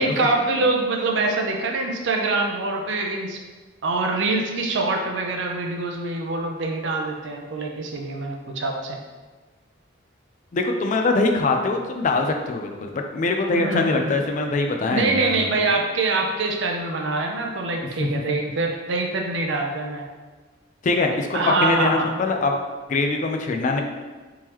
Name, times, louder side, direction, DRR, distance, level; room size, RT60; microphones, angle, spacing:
voice 1, 0.0-3.4 3.8-9.0 13.5-14.2 14.9-20.0 21.3-22.1, right 3 dB, 65° right, 2 dB, 0.5 m, -24 dB
voice 2, 10.5-15.5 18.0-18.1 20.8-22.6 22.9-23.8, left 3 dB, 40° left, 4 dB, 0.3 m, -23 dB
3.5 x 3.0 x 2.9 m, 1.3 s
head